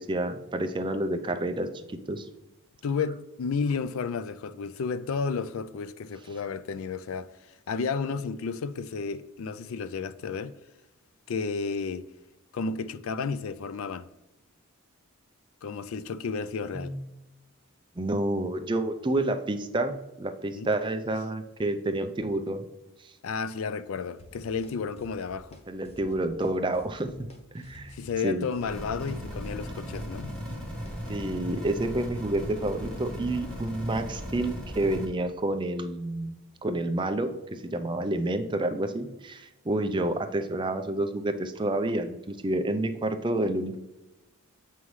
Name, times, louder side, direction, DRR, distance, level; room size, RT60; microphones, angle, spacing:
voice 1, 0.0-1.7 2.1-2.3 16.7-16.9 18.0-22.7 25.7-27.1 27.5-27.9 28.2-28.5 31.1-36.3 36.6-43.8, right 1 dB, 20° right, 0.4 m, -29 dB
voice 2, 2.8-10.5 11.3-12.1 12.5-14.1 15.6-17.0 20.5-20.7 23.2-25.6 27.9-30.3, left 5 dB, 70° left, 0.4 m, -32 dB
sound 1, 24.2-24.7 25.0-25.6 25.9-26.5 26.7-27.4 27.6-31.3, equal, 30° left, 0.8 m, -51 dB
sound 2, 28.6-35.1, equal, 5° left, 1.4 m, -37 dB
8.0 x 5.6 x 3.2 m
head